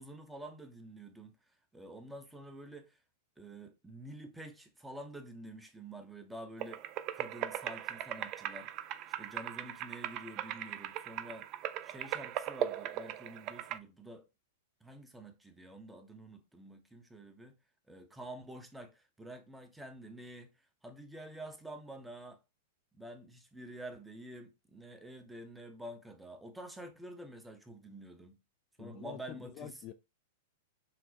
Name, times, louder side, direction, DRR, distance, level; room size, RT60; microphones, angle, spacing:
voice 1, 0.0-3.0 3.4-6.9 7.1-8.7 9.2-11.5 11.8-14.3 14.8-17.6 17.9-20.5 20.8-22.4 22.9-28.4 28.8-29.8, right 1 dB, 5° right, 0.8 m, -48 dB
sound 1, 6.6-13.8, right 12 dB, 40° right, 0.3 m, -39 dB
voice 2, 28.8-29.9, left 10 dB, 40° left, 0.4 m, -47 dB
5.9 x 2.1 x 2.7 m
hypercardioid pair, 110°, 0 cm